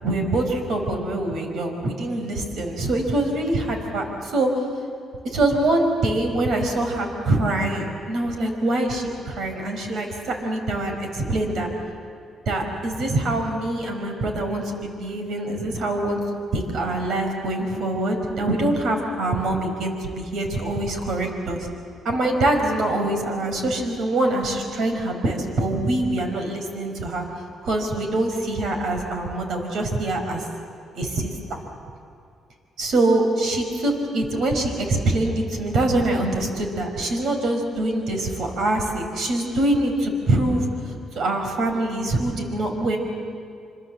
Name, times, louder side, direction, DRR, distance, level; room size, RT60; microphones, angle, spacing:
voice 1, 0.0-4.5 5.2-11.7 12.4-16.2 16.5-21.7 22.0-27.2 27.6-30.5 30.9-31.3 32.8-43.0, right 2 dB, 70° right, 4 dB, 5.1 m, -24 dB
27.0 x 26.5 x 7.8 m, 2.4 s
cardioid pair, 90°, 0 cm